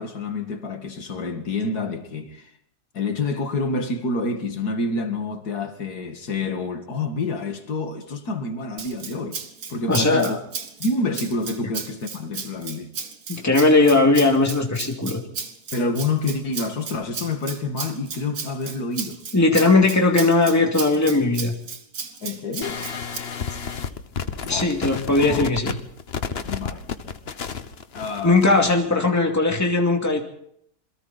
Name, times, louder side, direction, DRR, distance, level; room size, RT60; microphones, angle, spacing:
voice 1, 0.0-2.5 2.9-9.4 9.7-10.3 10.8-12.9 15.7-19.2 22.2-22.8 24.4-24.7 25.2-25.5 26.4-26.9 27.9-28.7, left 3 dB, 70° left, 2.6 m, -28 dB
Rattle (instrument), 8.8-23.2, right 6 dB, 60° right, 2.0 m, -35 dB
voice 2, 9.9-10.4 13.3-15.2 19.3-21.5 24.5-25.7 28.2-30.2, left 3 dB, 10° left, 2.5 m, -18 dB
sound 1, 22.6-28.8, left 6 dB, 40° left, 1.2 m, -31 dB
27.5 x 22.5 x 4.2 m
omnidirectional pair, 1.7 m